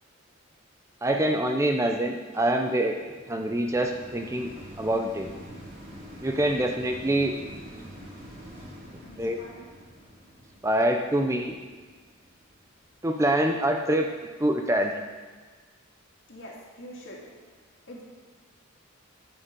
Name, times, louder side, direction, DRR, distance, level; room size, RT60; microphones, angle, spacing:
voice 1, 1.0-3.0 3.3-4.5 4.8-5.3 6.2-7.4 9.2-9.4 10.6-11.5 13.0-14.1 14.4-15.0, right 1 dB, 15° right, 4 dB, 0.5 m, -25 dB
sound 1, 2.3-13.6 14.2-14.3, equal, 45° right, 2.8 m, -46 dB
voice 2, 9.0-9.7 11.2-11.5 16.3-17.3 17.8-18.0, equal, 65° left, -3 dB, 2.2 m, -45 dB
9.9 x 6.9 x 5.2 m, 1.4 s
head